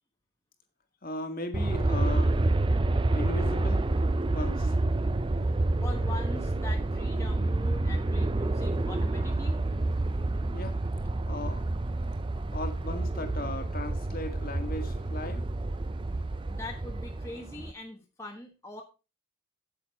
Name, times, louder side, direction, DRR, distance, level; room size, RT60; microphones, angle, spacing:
voice 1, 1.0-2.5 3.1-3.8 4.3-4.8 10.5-11.6 12.5-15.4, left 2 dB, 40° left, 5 dB, 1.7 m, -37 dB
Aircraft, 1.5-17.7, right 2 dB, 25° right, 0.4 m, -28 dB
voice 2, 5.8-9.6 16.5-18.8, left 2 dB, 15° left, 0 dB, 1.3 m, -42 dB
8.9 x 8.2 x 4.7 m, 0.30 s
head